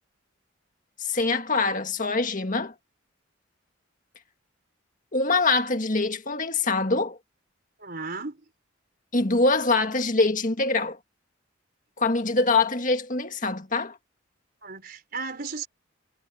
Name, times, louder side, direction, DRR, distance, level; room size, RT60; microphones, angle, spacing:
voice 1, 1.0-2.7 5.1-7.2 9.1-11.0 12.0-14.0, left 3 dB, 40° left, 1.9 m, -24 dB
voice 2, 7.8-8.4 14.6-15.7, right 4 dB, 45° right, 4.4 m, -35 dB
head